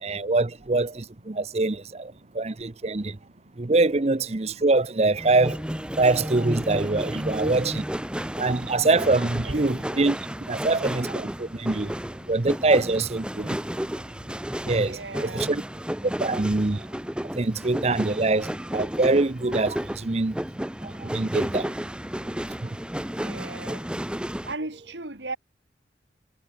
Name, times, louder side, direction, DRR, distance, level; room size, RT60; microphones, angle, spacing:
voice 1, 0.0-3.2 3.6-5.6 6.0-7.8 8.4-10.2 10.5-11.9 12.3-13.6 14.6-15.6 16.0-16.9 17.3-20.4 20.8-21.7 22.6-22.7, right 3 dB, 35° right, 0.8 m, -24 dB
sound 1, 5.2-24.5, equal, 5° right, 0.8 m, -32 dB
voice 2, 9.4-9.7 14.8-15.5 23.2-23.8 24.4-25.4, right 2 dB, 75° right, 3.1 m, -36 dB
head